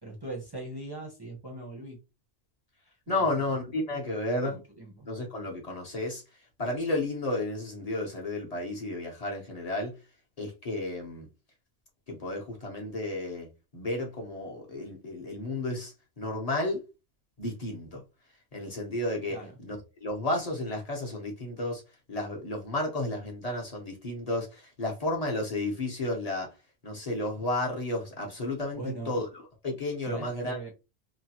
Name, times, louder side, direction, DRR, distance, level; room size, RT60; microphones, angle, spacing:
voice 1, 0.0-2.0 3.1-3.3 4.4-5.1 19.3-19.6 28.8-29.2 30.1-30.7, right 2 dB, 25° right, 0.6 m, -40 dB
voice 2, 3.1-4.6 5.0-6.2 6.6-9.9 10.4-11.3 12.1-16.8 17.4-18.0 18.5-19.4 19.6-21.8 22.1-26.5 26.8-29.3 29.6-30.6, left 2 dB, 35° left, 0.8 m, -32 dB
3.0 x 2.2 x 2.8 m
omnidirectional pair, 1.2 m